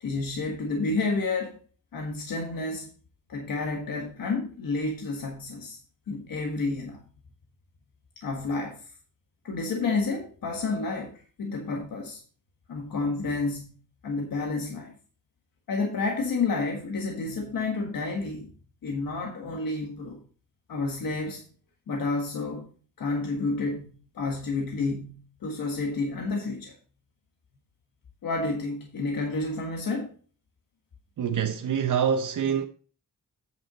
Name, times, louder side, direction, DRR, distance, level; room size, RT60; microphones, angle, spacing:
voice 1, 0.0-1.6 1.9-2.9 3.3-5.8 6.1-7.0 8.2-8.8 9.4-12.2 12.7-13.8 14.0-14.9 15.7-18.5 18.8-20.2 20.7-21.4 21.9-22.7 23.0-26.7 28.2-30.1, left 3 dB, 85° left, 1.6 m, -30 dB
voice 2, 31.2-32.7, right 7 dB, 65° right, 0.8 m, -25 dB
8.9 x 6.5 x 4.0 m
wide cardioid pair, 120°, 33 cm